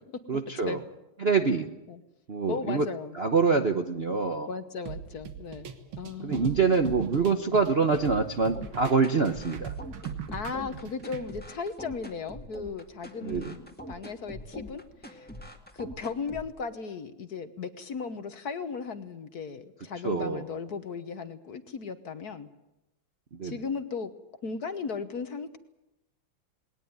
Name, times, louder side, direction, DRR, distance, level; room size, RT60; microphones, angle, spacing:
voice 1, 0.3-0.8 1.2-1.7 2.3-2.9 3.1-4.5 6.2-9.7 13.2-13.4 20.0-20.4 23.3-23.6, right 4 dB, 40° right, 6 dB, 0.9 m, -25 dB
voice 2, 2.5-3.2 4.5-5.7 6.0-7.0 10.3-15.3 15.7-22.5 23.4-24.1 24.4-25.6, left 5 dB, 55° left, 10 dB, 1.5 m, -36 dB
sound 1, 4.9-11.3, right 8 dB, 70° right, 2.3 m, -39 dB
sound 2, 8.5-16.5, left 1 dB, 5° left, 1.7 m, -43 dB
20.0 x 19.0 x 9.5 m, 0.92 s
omnidirectional pair, 2.3 m